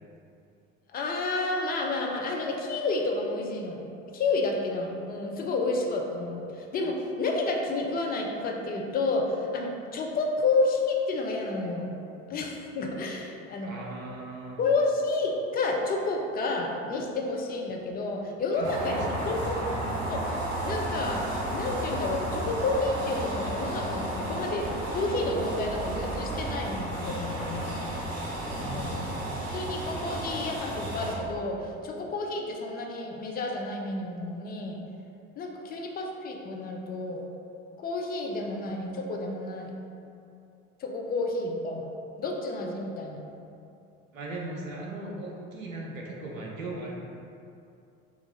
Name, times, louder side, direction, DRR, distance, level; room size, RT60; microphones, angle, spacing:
voice 1, 0.9-3.8 4.1-11.9 12.3-13.7 14.6-19.6 20.1-20.3 20.6-27.8 28.6-29.1 29.5-34.8 35.4-37.3 37.8-39.7 40.8-41.9 42.2-43.2, left 3 dB, 25° left, 1 dB, 0.4 m, -30 dB
voice 2, 13.6-14.6 18.5-19.8 28.5-29.3 44.1-47.0, right 2 dB, 90° right, -2 dB, 0.5 m, -39 dB
sound 1, 18.6-31.1, right 1 dB, 40° right, 1.0 m, -32 dB
3.8 x 2.4 x 2.9 m, 2.6 s
figure-of-eight pair, 60°, 39 cm